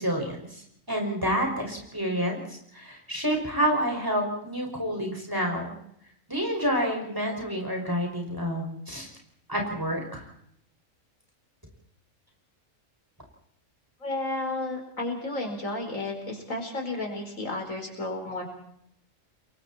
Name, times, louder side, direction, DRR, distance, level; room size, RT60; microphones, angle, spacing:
voice 1, 0.0-5.7 6.3-9.1 9.5-10.2, equal, 15° right, 0 dB, 6.0 m, -29 dB
voice 2, 14.0-18.4, left 2 dB, 85° left, 1 dB, 5.2 m, -32 dB
29.5 x 23.0 x 4.4 m, 0.72 s
omnidirectional pair, 1.3 m